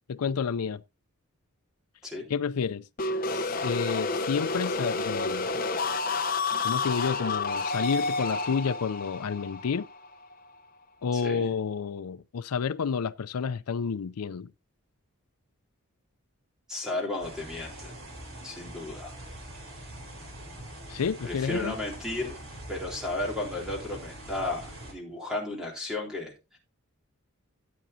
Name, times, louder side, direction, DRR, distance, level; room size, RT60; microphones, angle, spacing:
voice 1, 0.1-0.8 2.3-2.8 3.3-5.5 6.6-9.9 11.0-14.5 20.9-21.7, left 6 dB, 85° left, 0.5 m, -30 dB
sound 1, 3.0-10.7, left 3 dB, 40° left, 0.9 m, -30 dB
voice 2, 11.1-11.5 16.7-17.9 18.4-19.1 21.2-22.4 22.7-26.6, left 2 dB, 5° right, 3.7 m, -34 dB
sound 2, 17.2-24.9, right 1 dB, 60° right, 3.7 m, -43 dB
14.0 x 8.7 x 2.7 m
head